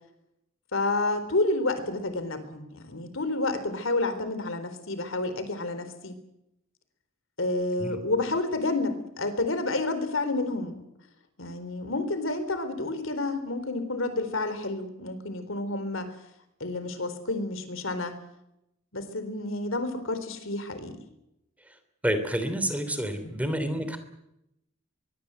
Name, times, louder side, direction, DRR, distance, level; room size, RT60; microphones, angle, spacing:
voice 1, 0.7-6.1 7.4-10.8 11.4-16.1 16.6-18.1 18.9-21.0 23.2-23.3 23.8-24.0, left 2 dB, 65° left, 10 dB, 3.9 m, -30 dB
voice 2, 22.0-24.0, right 1 dB, 5° right, 9 dB, 3.2 m, -28 dB
23.0 x 23.0 x 8.1 m, 0.84 s
head